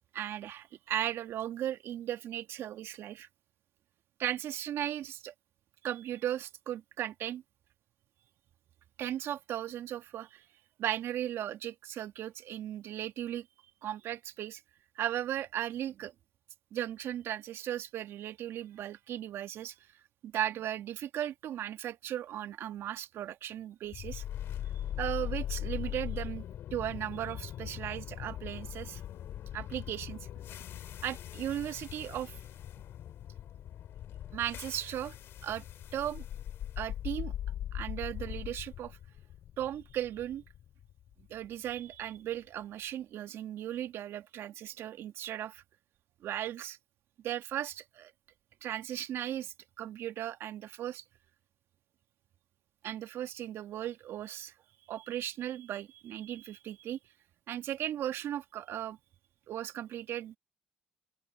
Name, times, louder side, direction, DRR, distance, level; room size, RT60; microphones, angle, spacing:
voice 1, 0.1-3.3 4.2-5.3 5.8-7.4 9.0-10.4 10.8-13.5 13.8-14.6 15.0-16.1 16.7-19.7 20.2-24.2 25.0-26.4 26.7-29.0 29.5-30.2 31.0-32.3 34.3-35.1 35.4-35.6 35.9-36.2 36.8-37.3 37.7-39.0 39.6-40.4 41.3-45.6 46.2-46.8 47.2-48.1 48.6-51.0 52.8-54.5 54.9-57.0 57.5-59.0 59.5-60.4, right 11 dB, 65° right, 2.1 m, -37 dB
sound 1, 23.9-42.0, left 11 dB, 65° left, 3.4 m, -40 dB
open air
hypercardioid pair, 55°, 4 cm